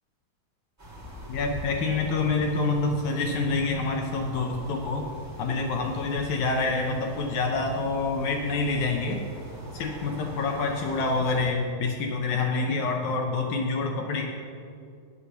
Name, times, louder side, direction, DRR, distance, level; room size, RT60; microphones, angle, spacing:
sound 1, 0.8-11.5, left 1 dB, 10° right, 0.9 m, -42 dB
voice 1, 1.3-5.1 5.4-9.2 9.7-14.3, left 3 dB, 75° left, 2 dB, 1.8 m, -27 dB
9.6 x 8.1 x 6.5 m, 2.4 s
omnidirectional pair, 4.3 m